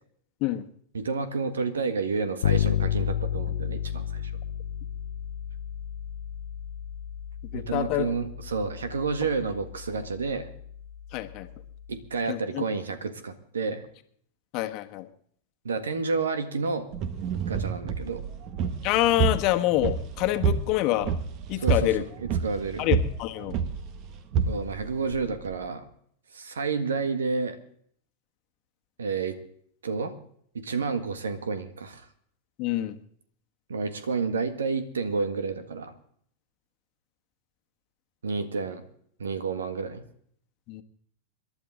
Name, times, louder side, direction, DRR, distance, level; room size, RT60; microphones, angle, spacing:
voice 1, 0.9-4.4 7.5-10.5 11.9-13.9 15.6-16.9 17.5-18.2 21.6-21.9 22.2-22.8 24.5-25.9 26.3-27.6 29.0-29.4 29.8-30.1 30.5-32.1 33.7-35.9 38.2-38.9 39.2-40.0, right 4 dB, 75° right, 11 dB, 1.8 m, -30 dB
Bass guitar, 2.4-12.1, left 9 dB, 70° left, 0.7 m, -32 dB
voice 2, 7.5-8.0 11.1-11.5 12.3-12.6 14.5-15.1 18.8-21.1 21.5-22.0 22.8-23.6 32.6-33.0 40.7-40.8, left 15 dB, 45° left, 8 dB, 1.4 m, -26 dB
sound 1, 16.9-25.6, right 6 dB, 45° right, 1.5 m, -29 dB
27.0 x 11.5 x 3.8 m, 0.63 s
figure-of-eight pair, 95°, 0 cm